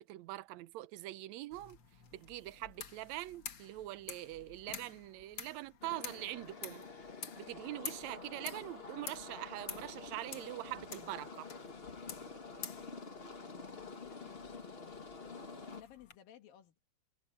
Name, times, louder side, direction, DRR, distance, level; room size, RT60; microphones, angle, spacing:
voice 1, 0.0-1.8 2.1-6.8 7.4-11.5, right 17 dB, 80° right, 1.6 m, -43 dB
sound 1, 1.5-16.2, left 7 dB, 45° left, 1.7 m, -50 dB
sound 2, 5.8-15.8, left 4 dB, 65° left, 0.5 m, -48 dB
sound 3, 7.1-15.6, left 3 dB, 30° left, 2.3 m, -68 dB
voice 2, 13.4-15.0 15.7-16.8, left 11 dB, 85° left, 3.5 m, -58 dB
omnidirectional pair, 3.9 m